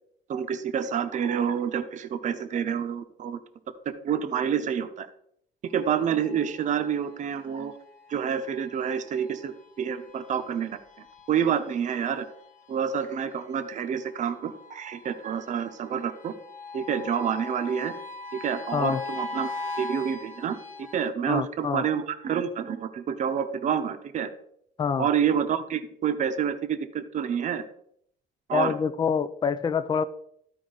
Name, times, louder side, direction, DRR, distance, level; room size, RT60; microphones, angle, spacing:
voice 1, 0.3-3.4 4.0-5.1 5.7-7.7 8.1-10.8 11.3-12.2 12.7-16.3 16.7-17.9 18.4-19.5 19.8-24.3 25.0-27.6 28.5-28.7, right 8 dB, 45° right, 8 dB, 0.8 m, -28 dB
sound 1, 5.7-21.1, left 3 dB, 50° left, 1.0 m, -42 dB
voice 2, 21.3-21.8 24.8-25.1 28.5-30.0, left 6 dB, 25° left, 12 dB, 0.4 m, -26 dB
12.5 x 4.7 x 3.9 m, 0.70 s
cardioid pair, 110°, 17 cm